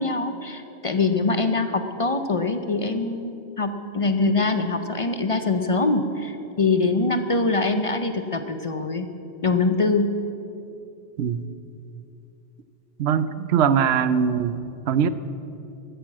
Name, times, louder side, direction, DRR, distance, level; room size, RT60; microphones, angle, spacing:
voice 1, 0.0-9.1 9.4-10.1, left 3 dB, 40° left, 8 dB, 0.6 m, -23 dB
voice 2, 13.0-14.6 14.9-15.1, right 7 dB, 75° right, 14 dB, 0.9 m, -21 dB
13.5 x 8.8 x 7.4 m, 2.7 s
omnidirectional pair, 1.1 m